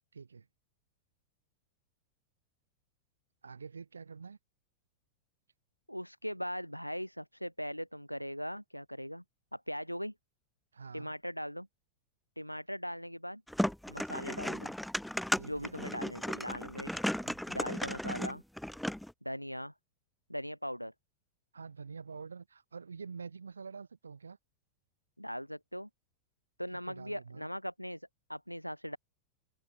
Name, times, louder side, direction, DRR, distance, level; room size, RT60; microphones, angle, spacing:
voice 1, 0.1-0.5 3.4-4.4 10.7-11.1 15.3-15.8 16.9-17.4 21.5-24.4 26.7-27.5, right 5 dB, 75° right, 2.9 m, -47 dB
voice 2, 5.9-9.2 9.5-10.1 10.9-11.7 12.4-13.4 13.9-14.7 15.5-17.0 17.5-18.4 19.2-19.7 20.3-20.9 25.2-25.9 26.6-29.0, equal, 90° left, 1.0 m, -40 dB
sound 1, 13.5-19.1, left 1 dB, ahead, 0.3 m, -35 dB
open air
figure-of-eight pair, 90°, 0 cm